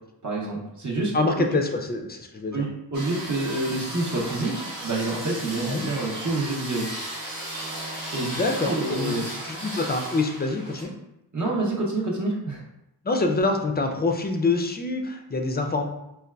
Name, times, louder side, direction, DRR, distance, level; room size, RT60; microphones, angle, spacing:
voice 1, 0.2-1.1 1.5-1.6 2.5-6.9 8.1-8.3 8.6-9.3 11.3-12.6, right 2 dB, 45° right, -3 dB, 0.7 m, -27 dB
voice 2, 1.1-2.7 5.7-5.9 8.3-10.9 13.0-15.9, left 3 dB, 25° left, 4 dB, 0.4 m, -26 dB
sound 1, 2.9-10.8, right 1 dB, 80° right, 1.1 m, -35 dB
3.8 x 2.3 x 2.2 m, 0.85 s
wide cardioid pair, 60°, 41 cm